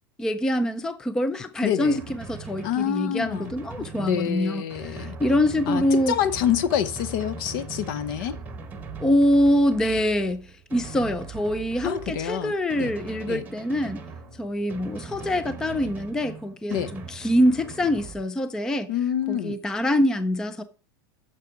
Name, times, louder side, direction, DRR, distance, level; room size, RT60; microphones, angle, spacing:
voice 1, 0.2-6.2 9.0-14.0 14.4-18.9 19.3-20.6, left 1 dB, 5° left, 0.3 m, -24 dB
voice 2, 1.6-2.0 2.6-5.2 5.7-8.4 11.8-12.9 13.3-13.4 16.7-16.9 18.9-19.6, left 10 dB, 55° left, 0.8 m, -27 dB
Drum, 1.8-18.2, right 4 dB, 15° right, 1.0 m, -40 dB
8.7 x 6.8 x 4.7 m
supercardioid pair, 160°, 13 cm